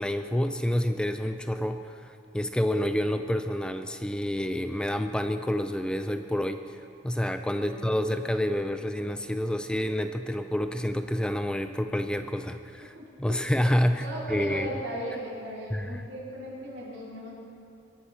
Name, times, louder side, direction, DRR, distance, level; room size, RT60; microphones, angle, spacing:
voice 1, 0.0-6.8 7.0-14.7 15.7-16.1, equal, 5° left, 8 dB, 0.3 m, -28 dB
voice 2, 7.5-7.8 12.8-13.6 13.9-17.3, equal, 75° right, -6 dB, 4.5 m, -38 dB
22.5 x 10.5 x 4.4 m, 2.5 s
head